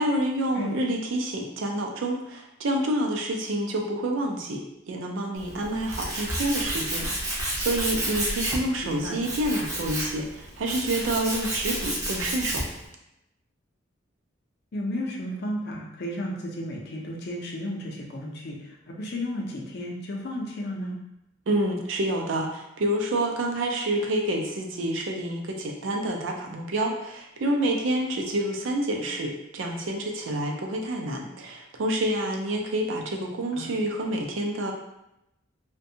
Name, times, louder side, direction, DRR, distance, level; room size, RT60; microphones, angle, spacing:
voice 1, 0.0-12.6 21.5-34.7, right 1 dB, 70° right, 2 dB, 0.4 m, -28 dB
Tools, 5.4-12.8, right 1 dB, 15° right, 0.5 m, -31 dB
voice 2, 8.8-9.2 14.7-20.9 33.5-33.7, left 1 dB, 55° left, -1 dB, 0.5 m, -33 dB
2.6 x 2.2 x 2.7 m, 0.88 s
head